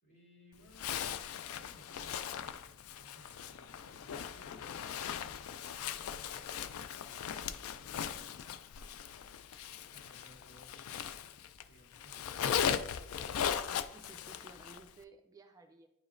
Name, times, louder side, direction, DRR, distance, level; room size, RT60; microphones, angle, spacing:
voice 1, 0.0-6.5 7.0-11.3 11.7-12.6, equal, 50° left, -4 dB, 2.7 m, -62 dB
Zipper (clothing), 0.7-11.6 11.9-14.9, left 8 dB, 85° left, 0.3 m, -38 dB
voice 2, 13.9-15.9, right 3 dB, 15° right, 5 dB, 0.4 m, -56 dB
9.4 x 4.9 x 2.6 m, 0.83 s
head